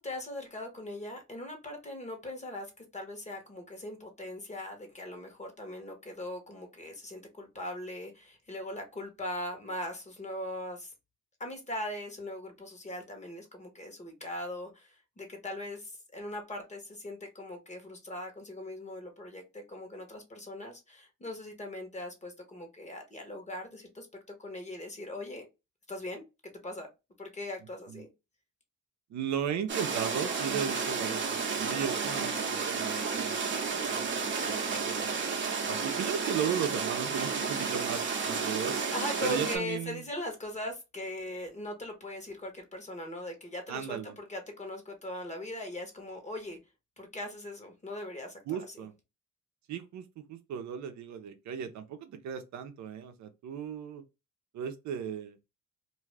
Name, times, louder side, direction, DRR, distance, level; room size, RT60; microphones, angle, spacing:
voice 1, 0.0-10.9 11.4-24.1 24.4-25.5 25.9-26.2 26.6-26.9 27.2-28.1 38.9-46.6 47.0-48.4, left 1 dB, 25° left, 1.2 m, -40 dB
voice 2, 29.1-34.1 34.4-35.2 35.6-38.8 39.2-40.0 43.7-44.1 48.5-48.9 49.7-54.0 54.5-55.4, right 8 dB, 70° right, 0.6 m, -36 dB
sound 1, 29.7-39.6, right 5 dB, 40° right, 0.8 m, -32 dB
2.6 x 2.3 x 3.3 m
cardioid pair, 90°, 30 cm